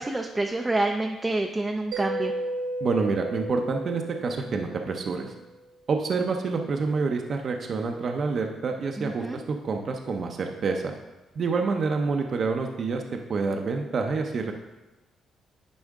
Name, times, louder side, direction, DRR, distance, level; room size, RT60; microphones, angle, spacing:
voice 1, 0.0-2.3 9.0-9.4, right 2 dB, 15° right, 2 dB, 0.5 m, -27 dB
Mallet percussion, 1.9-5.4, right 1 dB, 75° right, 0.9 m, -34 dB
voice 2, 2.8-5.3 5.9-10.9 11.4-14.5, right 4 dB, 50° right, 3 dB, 0.7 m, -27 dB
10.0 x 4.3 x 3.6 m, 1.1 s
cardioid pair, 90°, 0 cm